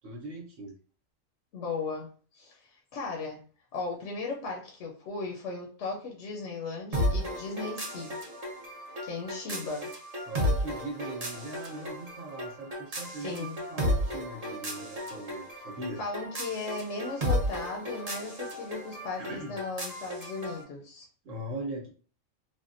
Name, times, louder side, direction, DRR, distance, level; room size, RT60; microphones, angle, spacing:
voice 1, 0.0-0.7 10.3-16.0 19.2-19.6 21.2-21.9, right 1 dB, 75° right, -2 dB, 1.2 m, -40 dB
voice 2, 1.5-2.1 2.3-3.4 3.7-8.2 9.0-9.9 13.0-13.6 16.0-21.1, left 3 dB, 70° left, 0 dB, 0.9 m, -36 dB
sound 1, 6.9-20.6, equal, 40° right, 0.7 m, -34 dB
3.5 x 2.1 x 2.5 m, 0.40 s
omnidirectional pair, 1.4 m